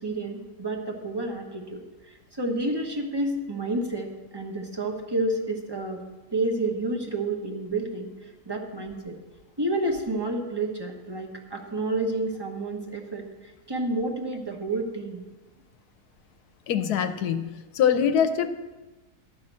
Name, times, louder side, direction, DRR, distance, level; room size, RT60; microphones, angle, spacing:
voice 1, 0.0-6.0 6.3-9.2 9.6-15.2, right 2 dB, 20° right, 2 dB, 1.0 m, -30 dB
voice 2, 16.7-18.5, left 8 dB, 80° left, 9 dB, 1.3 m, -24 dB
11.0 x 5.7 x 7.5 m, 1.2 s
omnidirectional pair, 1.7 m